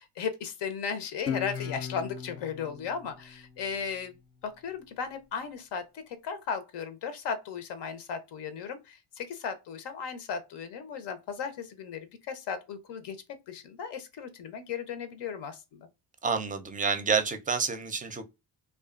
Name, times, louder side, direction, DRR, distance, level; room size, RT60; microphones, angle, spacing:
voice 1, 0.0-15.9, left 6 dB, 75° left, 0.7 m, -36 dB
Guitar, 1.3-4.5, left 7 dB, 35° left, 0.5 m, -38 dB
voice 2, 16.2-18.2, right 5 dB, 20° right, 0.5 m, -28 dB
2.4 x 2.3 x 2.3 m
cardioid pair, 75°, 42 cm